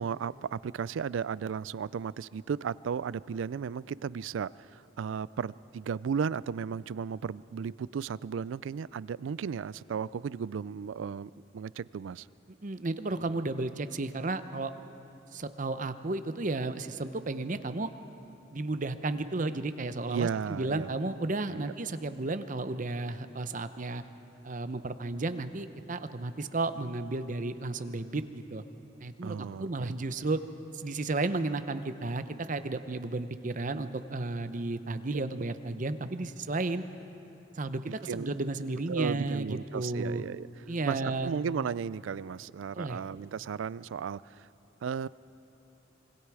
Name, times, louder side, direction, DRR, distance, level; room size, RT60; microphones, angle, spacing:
voice 1, 0.0-12.3 20.1-20.9 21.5-21.7 29.2-29.9 35.1-35.2 37.9-38.3 38.9-40.5 40.9-44.5 44.8-45.1, right 6 dB, 90° right, 20 dB, 0.4 m, -35 dB
voice 2, 12.6-14.7 15.3-17.9 18.5-24.0 24.4-28.6 29.0-30.4 30.7-36.8 37.6-40.2 40.7-41.3 42.7-43.0, right 2 dB, 45° right, 11 dB, 0.8 m, -33 dB
26.0 x 23.0 x 4.9 m, 2.9 s
head